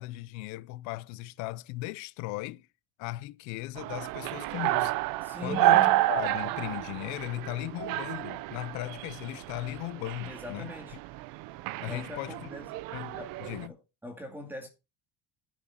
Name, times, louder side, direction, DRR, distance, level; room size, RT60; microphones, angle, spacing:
voice 1, 0.0-2.7 3.0-4.9 5.4-10.7 11.8-12.5 12.9-13.7, left 18 dB, 40° left, 0.5 m, -37 dB
sound 1, 3.8-13.7, right 17 dB, 50° right, 0.7 m, -30 dB
voice 2, 5.2-6.1 10.2-11.0 11.9-12.7 13.2-13.3 13.7-14.7, left 1 dB, 5° right, 2.4 m, -42 dB
9.8 x 7.3 x 5.7 m
cardioid pair, 165°, 44 cm